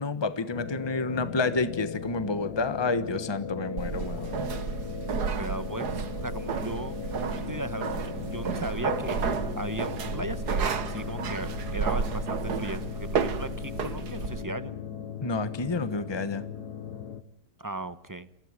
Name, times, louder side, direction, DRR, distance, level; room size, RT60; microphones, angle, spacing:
voice 1, 0.0-4.5 15.2-16.4, left 3 dB, 20° left, 12 dB, 1.1 m, -29 dB
sound 1, 0.5-17.2, left 7 dB, 80° left, 1.7 m, -38 dB
sound 2, 3.8-14.4, right 6 dB, 80° right, 1.8 m, -32 dB
voice 2, 5.1-14.7 17.6-18.3, right 1 dB, 15° right, 12 dB, 0.8 m, -37 dB
28.5 x 15.5 x 9.8 m, 0.78 s
omnidirectional pair, 1.7 m